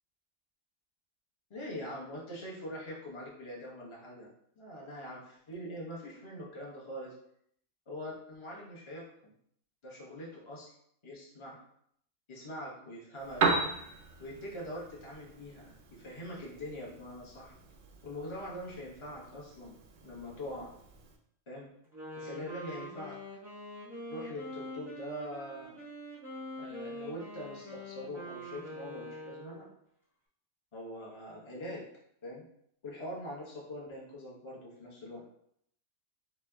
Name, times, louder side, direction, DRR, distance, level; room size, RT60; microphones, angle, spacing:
voice 1, 1.5-4.3 4.6-7.1 7.9-9.3 9.8-10.7 11.0-11.6 12.3-13.5 14.2-17.5 18.0-19.7 20.0-20.7 21.5-21.7 22.2-23.2 24.1-25.8 26.6-29.7 30.7-31.9 32.2-32.4 32.8-35.2, equal, 25° left, -4 dB, 0.9 m, -43 dB
Piano, 13.2-21.2, right 4 dB, 65° right, 0.4 m, -37 dB
Wind instrument woodwind instrument, 21.8-29.7, equal, ahead, 1.1 m, -44 dB
3.3 x 2.8 x 3.5 m, 0.69 s
omnidirectional pair, 1.3 m